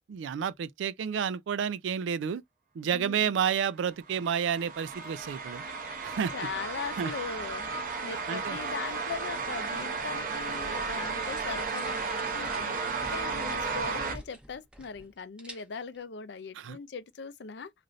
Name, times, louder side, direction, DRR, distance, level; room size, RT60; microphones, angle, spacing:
voice 1, 0.1-2.4 2.8-5.6 6.0-6.3 7.0-7.1 8.3-8.6 16.6-16.8, right 7 dB, 80° right, 0.3 m, -30 dB
voice 2, 2.9-3.4 5.7-6.0 6.3-12.8 13.1-17.7, left 5 dB, 65° left, 0.5 m, -40 dB
sound 1, 4.1-14.2, right 4 dB, 45° right, 0.7 m, -34 dB
sound 2, 10.5-15.1 15.4-16.0, equal, 5° right, 0.6 m, -47 dB
3.1 x 2.5 x 2.5 m
head